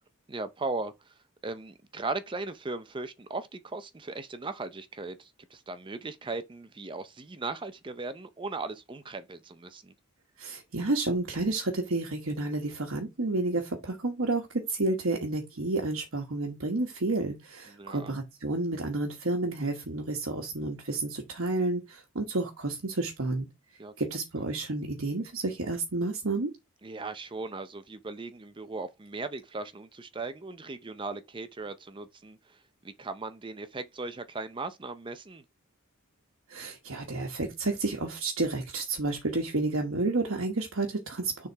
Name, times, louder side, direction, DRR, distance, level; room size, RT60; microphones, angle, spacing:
voice 1, 0.3-1.2 1.4-9.9 17.7-18.2 23.8-23.9 26.8-35.4, right 3 dB, 25° right, 0.5 m, -38 dB
voice 2, 10.4-23.5 24.0-26.5 36.5-41.5, right 2 dB, 65° right, 1.2 m, -30 dB
6.8 x 3.8 x 4.5 m
head